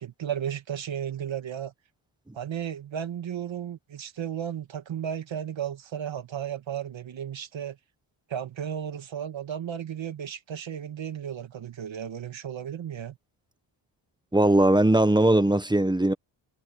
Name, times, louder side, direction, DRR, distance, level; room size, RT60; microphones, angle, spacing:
voice 1, 0.0-1.7 2.3-7.8 8.3-13.2, right 9 dB, 70° right, 2.5 m, -34 dB
voice 2, 14.3-16.1, right 1 dB, 10° right, 1.2 m, -20 dB
cardioid pair, 90°, 48 cm